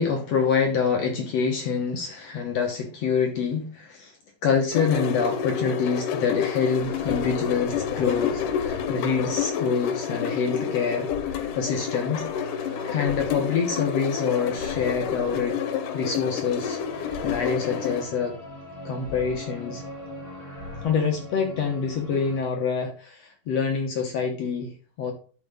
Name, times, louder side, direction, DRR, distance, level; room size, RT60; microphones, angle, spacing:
voice 1, 0.0-4.2 4.4-12.3 12.9-15.6 15.9-16.8 17.2-18.4 18.9-19.8 20.8-25.1, left 6 dB, 65° left, 3 dB, 2.0 m, -26 dB
sound 1, 4.7-18.0, left 8 dB, 85° left, 2.4 m, -29 dB
sound 2, 6.8-22.4, left 1 dB, 25° left, 4.4 m, -40 dB
13.5 x 4.6 x 3.5 m, 0.38 s
omnidirectional pair, 3.7 m